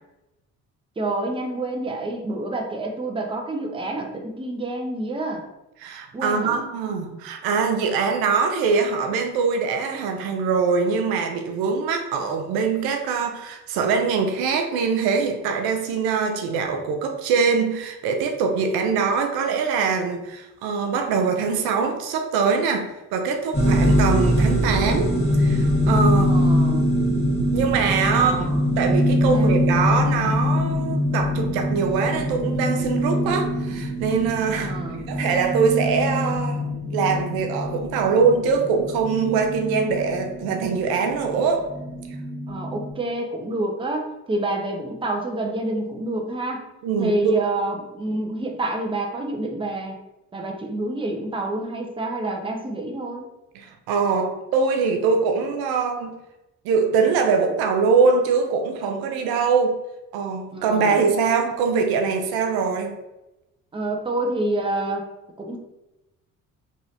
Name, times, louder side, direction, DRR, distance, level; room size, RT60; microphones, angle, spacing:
voice 1, 1.0-5.5 6.1-6.7 26.2-26.9 28.1-28.7 29.3-29.6 34.6-35.0 42.5-46.6 47.0-50.0 50.3-53.3 60.5-61.0 61.6-61.8 63.7-65.1 65.4-65.6, right 2 dB, 15° right, 0.6 m, -28 dB
voice 2, 5.8-26.4 27.5-28.5 28.8-34.7 35.1-41.7 46.8-47.4 53.6-56.2 56.6-59.8 60.1-62.9, right 5 dB, 75° right, 0.6 m, -23 dB
sound 1, 23.5-42.9, equal, 15° left, 1.3 m, -23 dB
3.1 x 2.6 x 2.7 m
supercardioid pair, 60°, 37 cm